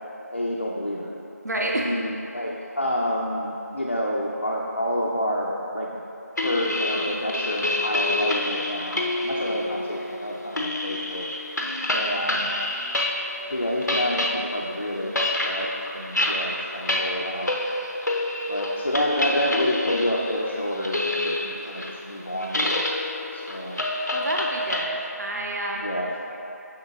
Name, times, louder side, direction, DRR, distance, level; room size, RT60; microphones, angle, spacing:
voice 1, 0.3-1.1 1.6-6.0 6.4-11.3 11.9-12.5 13.5-17.5 18.5-22.8 23.3-23.8 25.8-26.2, equal, 45° left, -4 dB, 0.5 m, -28 dB
voice 2, 1.4-1.9 9.4-9.6 24.1-26.0, right 1 dB, 75° right, -2 dB, 0.6 m, -30 dB
sound 1, 6.4-13.4 13.7-24.8, left 1 dB, 90° left, 0.7 m, -28 dB
6.4 x 6.4 x 2.4 m, 2.9 s
figure-of-eight pair, 180°, 9 cm